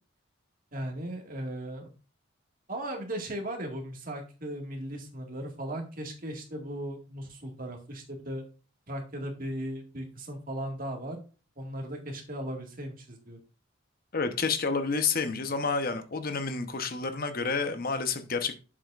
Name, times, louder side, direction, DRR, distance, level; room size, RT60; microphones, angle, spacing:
voice 1, 0.7-1.9 2.7-8.4 8.9-11.2 11.6-13.4, right 1 dB, 40° right, 1.9 m, -37 dB
voice 2, 14.1-18.6, left 4 dB, 45° left, 1.0 m, -29 dB
8.5 x 7.3 x 2.5 m
head